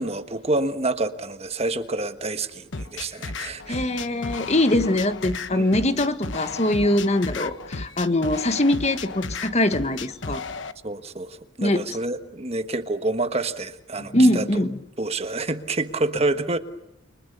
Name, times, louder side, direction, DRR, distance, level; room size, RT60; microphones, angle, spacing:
voice 1, 0.0-3.9 5.5-5.8 10.8-14.6 15.0-16.6, right 2 dB, 30° right, 9 dB, 1.4 m, -28 dB
sound 1, 2.7-10.7, left 4 dB, 75° left, 1.2 m, -34 dB
voice 2, 3.7-10.4 11.6-12.0 14.0-14.8, left 1 dB, 35° left, 9 dB, 1.5 m, -22 dB
29.0 x 26.0 x 6.9 m, 0.79 s
head